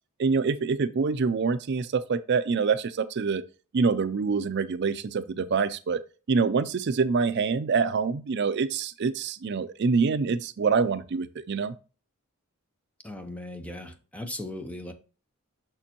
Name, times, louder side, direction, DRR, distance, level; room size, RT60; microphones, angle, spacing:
voice 1, 0.2-3.4 3.7-6.0 6.3-11.7, right 5 dB, 50° right, 0.4 m, -25 dB
voice 2, 13.0-14.9, left 1 dB, 5° left, 0.8 m, -38 dB
6.6 x 6.1 x 2.9 m
head